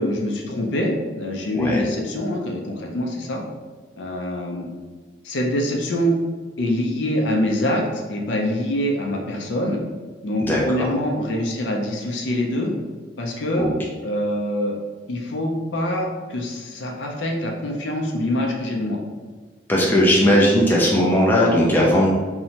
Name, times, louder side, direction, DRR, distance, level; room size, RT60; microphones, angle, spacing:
voice 1, 0.0-3.4 4.0-4.7 5.2-6.1 6.6-9.8 10.2-12.7 13.2-13.7 14.0-14.8 15.1-19.0, left 1 dB, 75° left, 0 dB, 0.5 m, -25 dB
voice 2, 1.5-1.9 10.5-10.9 13.5-13.7 19.7-22.1, equal, 10° left, -4 dB, 0.3 m, -18 dB
2.7 x 2.1 x 2.8 m, 1.4 s
head